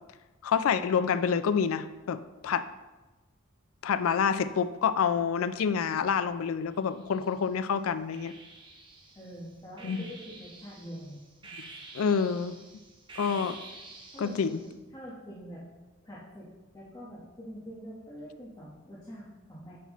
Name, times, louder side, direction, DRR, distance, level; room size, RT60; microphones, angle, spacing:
voice 1, 0.4-2.7 3.8-8.3 9.8-10.0 11.6-11.7 11.9-12.6 13.2-13.6 14.2-14.6, left 6 dB, 85° left, 13 dB, 0.4 m, -27 dB
sound 1, 6.7-7.5 8.1-14.7, right 3 dB, 25° right, 0.9 m, -49 dB
voice 2, 9.1-11.2 13.2-13.5 14.1-15.6 16.0-16.5 16.7-19.8, equal, 20° left, -7 dB, 1.2 m, -45 dB
9.2 x 5.7 x 3.1 m, 1.2 s
head